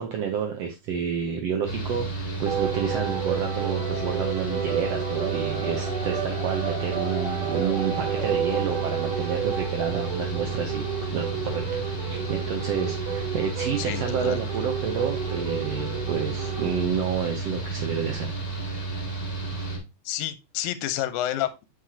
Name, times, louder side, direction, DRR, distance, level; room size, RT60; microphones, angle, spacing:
voice 1, 0.0-11.8 12.0-18.3, right 7 dB, 80° right, 3 dB, 1.4 m, -30 dB
Mechanical fan, 1.6-19.8, right 3 dB, 25° left, 1.4 m, -32 dB
sound 1, 2.5-16.9, right 7 dB, 65° right, 2.5 m, -32 dB
voice 2, 13.8-14.4 20.1-21.6, left 13 dB, 75° left, 11 dB, 2.0 m, -29 dB
7.4 x 4.9 x 2.8 m, 0.24 s
omnidirectional pair, 3.7 m